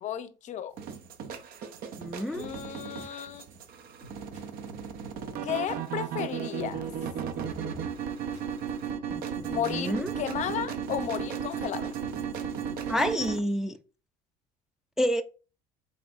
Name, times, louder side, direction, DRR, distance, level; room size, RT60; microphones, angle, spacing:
voice 1, 0.0-0.7 2.3-3.5 5.4-6.9 9.5-11.9, left 9 dB, 45° left, 0.6 m, -33 dB
sound 1, 0.8-13.4, right 7 dB, 60° right, 0.7 m, -35 dB
voice 2, 2.0-2.4 9.1-10.1 12.9-13.8 15.0-15.2, equal, 5° right, 0.3 m, -29 dB
sound 2, 2.3-11.6 12.0-13.1, right 1 dB, 45° right, 2.3 m, -53 dB
5.3 x 3.9 x 2.5 m
cardioid pair, 115°, 17 cm